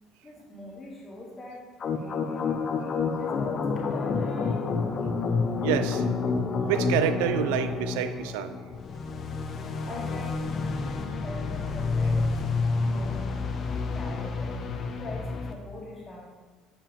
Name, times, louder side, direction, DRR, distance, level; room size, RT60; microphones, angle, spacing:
voice 1, 0.2-1.6 1.9-5.0 5.4-5.7 9.8-10.4 10.7-12.2 12.8-16.2, left 1 dB, 30° left, -4 dB, 2.2 m, -43 dB
sound 1, 1.8-15.5, left 4 dB, 45° left, 0.7 m, -29 dB
voice 2, 5.6-6.0 6.7-8.6, right 10 dB, 85° right, 11 dB, 0.3 m, -27 dB
7.4 x 5.1 x 3.5 m, 1.4 s
supercardioid pair, 80°, 0 cm